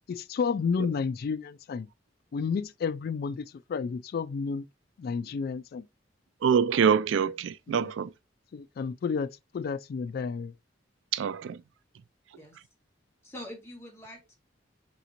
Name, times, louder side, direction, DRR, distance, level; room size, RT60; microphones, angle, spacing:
voice 1, 0.1-1.9 2.3-4.7 5.0-5.8 7.7-7.9 8.5-10.5, left 5 dB, 55° left, 0.3 m, -31 dB
voice 2, 6.4-8.1 11.1-11.6, right 7 dB, 75° right, 0.3 m, -25 dB
voice 3, 13.2-14.3, left 1 dB, 15° left, 1.6 m, -44 dB
5.7 x 3.0 x 2.5 m
head